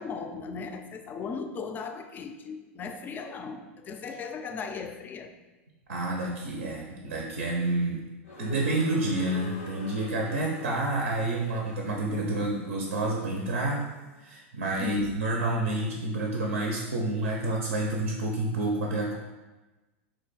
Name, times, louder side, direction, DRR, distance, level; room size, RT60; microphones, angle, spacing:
voice 1, 0.0-5.3 14.8-15.2, left 5 dB, 25° left, 7 dB, 0.3 m, -37 dB
voice 2, 5.9-8.0 8.4-13.8 14.2-19.1, right 2 dB, 85° right, -1 dB, 0.5 m, -29 dB
sound 1, 8.2-14.2, left 2 dB, 90° left, 0.7 m, -45 dB
2.9 x 2.2 x 4.0 m, 1.1 s
hypercardioid pair, 110°, 7 cm